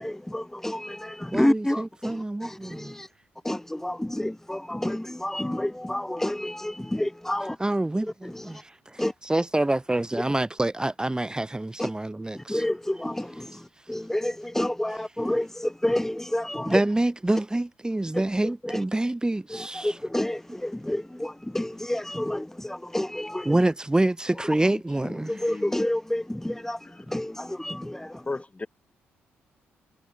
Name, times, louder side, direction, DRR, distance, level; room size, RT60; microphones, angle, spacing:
voice 1, 0.0-3.1 3.4-7.6 8.3-8.6 9.0-9.1 11.8-11.9 12.4-13.6 13.9-16.8 18.1-18.2 18.6-18.8 19.5-23.5 25.3-26.8 27.1-28.2, left 1 dB, 5° left, 0.9 m, -29 dB
voice 2, 1.3-2.9 7.6-8.6 8.9-12.6 16.7-20.0 20.5-20.6 23.4-25.6, right 2 dB, 15° right, 1.4 m, -27 dB
voice 3, 24.6-25.9 28.3-28.7, left 3 dB, 25° left, 2.8 m, -36 dB
hypercardioid pair, 50°, 5 cm